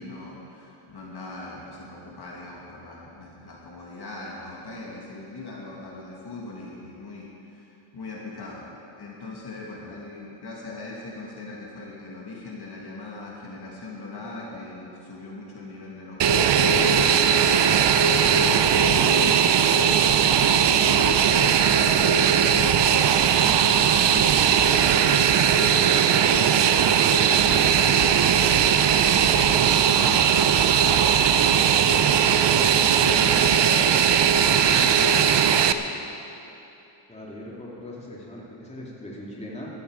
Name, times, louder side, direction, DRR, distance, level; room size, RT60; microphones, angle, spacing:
voice 1, 0.0-8.7 9.0-19.8 20.7-31.2 32.0-35.9, left 3 dB, 50° left, -4 dB, 2.4 m, -40 dB
Fixed-wing aircraft airplane, 16.2-35.7, right 8 dB, 60° right, 0.7 m, -19 dB
voice 2, 37.1-39.7, left 1 dB, 15° left, -5 dB, 2.8 m, -39 dB
15.5 x 12.5 x 5.0 m, 2.9 s
wide cardioid pair, 130°, 49 cm